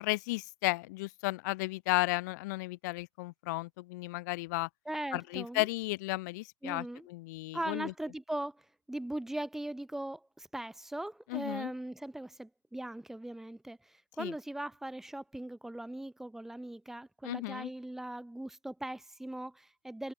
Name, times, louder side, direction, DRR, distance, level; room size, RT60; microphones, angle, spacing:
voice 1, 0.0-4.7 5.1-7.9 11.3-11.7 14.2-14.3 17.2-17.7, left 22 dB, 35° left, 0.4 m, -34 dB
voice 2, 4.8-5.7 6.6-7.1 7.5-20.1, right 1 dB, ahead, 1.5 m, -40 dB
hypercardioid pair, 155°, 17 cm